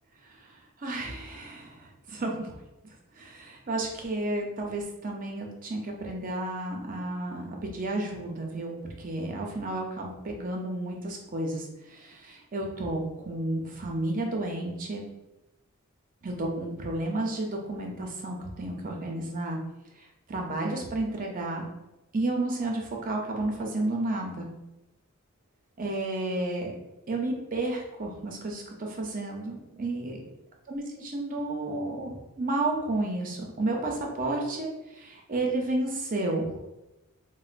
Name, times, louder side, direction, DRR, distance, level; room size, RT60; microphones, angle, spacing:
voice 1, 0.8-1.8 2.1-2.5 3.2-15.1 16.2-19.6 20.3-21.7 22.1-24.5 25.8-26.8 27.1-30.2 30.7-34.7 35.0-36.5, right 2 dB, 40° right, 1 dB, 0.6 m, -31 dB
4.1 x 2.1 x 2.4 m, 0.98 s
head